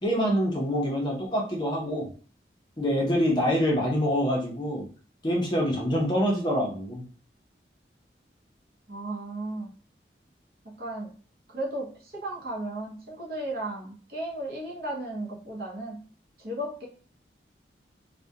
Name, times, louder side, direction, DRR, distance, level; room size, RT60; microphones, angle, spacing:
voice 1, 0.0-2.1 2.8-4.8 5.2-7.0, equal, 25° left, -1 dB, 0.5 m, -25 dB
voice 2, 8.9-9.7 10.8-11.1 11.5-16.0 16.4-16.9, right 1 dB, 55° right, -3 dB, 0.7 m, -35 dB
2.3 x 2.1 x 2.7 m, 0.41 s
head